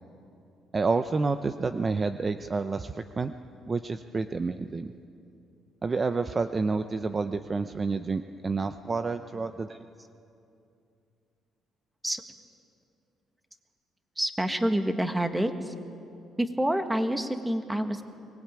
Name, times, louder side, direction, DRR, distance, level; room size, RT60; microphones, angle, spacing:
voice 1, 0.7-3.3 3.7-4.9 5.8-9.8, right 4 dB, 30° right, 9 dB, 0.7 m, -29 dB
voice 2, 14.1-15.7 16.4-18.0, right 1 dB, 10° right, 7 dB, 1.6 m, -28 dB
23.5 x 19.5 x 8.9 m, 2.6 s
cardioid pair, 100°, 0 cm